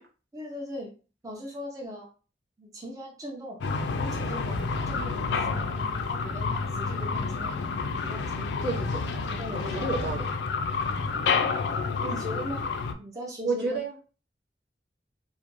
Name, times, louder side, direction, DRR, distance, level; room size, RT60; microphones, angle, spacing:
voice 1, 0.3-0.9 1.2-2.1 2.6-3.6 3.9-5.6 6.1-7.6 8.0-8.4 9.3-9.9 11.1-11.2 11.8-12.7 13.0-13.8, equal, 20° right, -2 dB, 0.5 m, -39 dB
sound 1, 3.6-12.9, left 4 dB, 75° left, 0.4 m, -29 dB
voice 2, 5.4-6.2 8.6-9.0 9.5-10.3 13.4-13.9, right 3 dB, 65° right, -1 dB, 0.8 m, -32 dB
2.5 x 2.1 x 3.0 m, 0.35 s
head